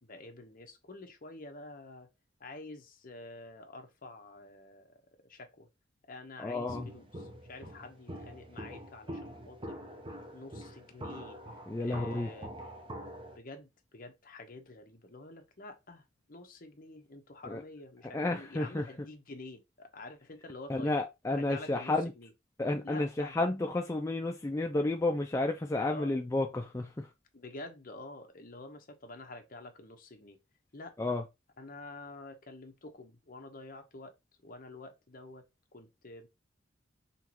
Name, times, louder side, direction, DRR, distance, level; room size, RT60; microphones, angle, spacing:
voice 1, 0.0-2.1 2.4-5.0 5.3-5.7 6.1-10.0 10.3-11.4 11.8-12.5 13.3-21.0 21.3-22.3 22.8-23.3 25.9-26.1 27.3-30.4 30.7-31.2 31.6-34.1 34.4-35.4 35.7-36.3, left 2 dB, 45° left, 1.0 m, -48 dB
voice 2, 6.4-6.9 11.7-12.3 17.4-17.6 18.1-18.9 20.7-22.1 22.6-27.1 31.0-31.2, left 2 dB, 15° left, 0.4 m, -31 dB
Walk footsteps, 6.7-13.4, equal, 25° right, 0.9 m, -45 dB
5.6 x 3.1 x 3.0 m
head